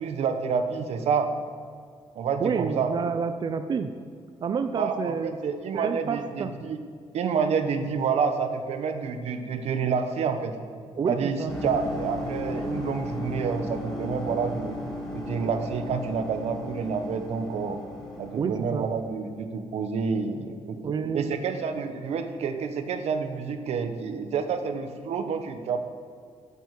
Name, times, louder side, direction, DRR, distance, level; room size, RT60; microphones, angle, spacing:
voice 1, 0.0-1.3 2.1-3.1 4.8-6.8 7.1-10.6 11.1-14.8 15.1-17.8 18.2-25.8, right 6 dB, 85° right, 8 dB, 1.3 m, -28 dB
voice 2, 2.4-3.9 4.4-5.4 5.7-6.5 11.0-11.5 15.4-15.5 18.3-18.9 20.8-21.4, right 6 dB, 45° right, 9 dB, 0.6 m, -29 dB
sound 1, 11.5-19.1, left 1 dB, 5° left, 2.9 m, -35 dB
14.0 x 8.5 x 8.3 m, 2.1 s
wide cardioid pair, 150°, 11 cm